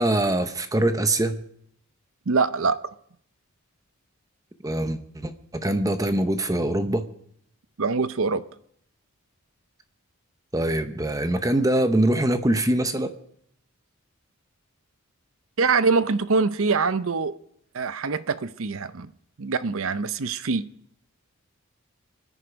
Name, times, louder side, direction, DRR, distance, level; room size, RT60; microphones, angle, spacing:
voice 1, 0.0-1.4 4.6-7.1 10.5-13.1, right 1 dB, 15° right, 0.8 m, -23 dB
voice 2, 2.3-2.8 7.8-8.4 15.6-17.4 17.7-19.1 19.4-20.7, right 4 dB, 70° right, 0.7 m, -24 dB
24.0 x 10.0 x 5.2 m
head